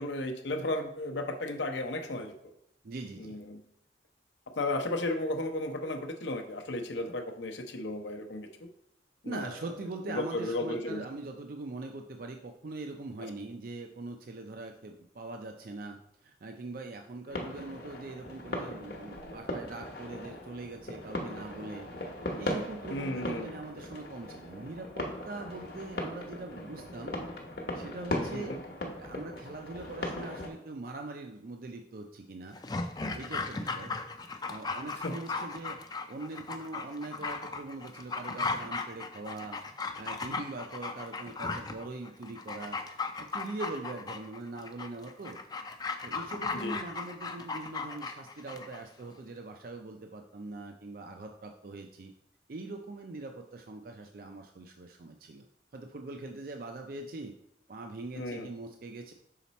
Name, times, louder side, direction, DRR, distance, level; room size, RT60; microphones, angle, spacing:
voice 1, 0.0-2.3 3.2-3.6 4.6-8.5 9.2-9.5 10.1-11.0 22.9-23.5 28.3-28.6 35.0-35.1 46.5-46.8 58.2-58.5, left 1 dB, 75° left, 4 dB, 0.7 m, -34 dB
voice 2, 2.8-3.4 9.2-21.9 22.3-27.2 27.7-28.6 29.0-32.6 33.1-33.9 34.5-35.8 36.1-39.6 40.0-42.8 43.2-45.4 46.0-52.1 52.5-55.5 55.7-57.3 57.7-59.1, right 2 dB, 50° right, 4 dB, 0.4 m, -42 dB
sound 1, 17.3-30.5, left 1 dB, 55° left, 1.0 m, -38 dB
Dog, 32.5-48.8 49.1-49.2, left 4 dB, 20° left, 0.4 m, -37 dB
5.7 x 4.1 x 4.1 m, 0.77 s
head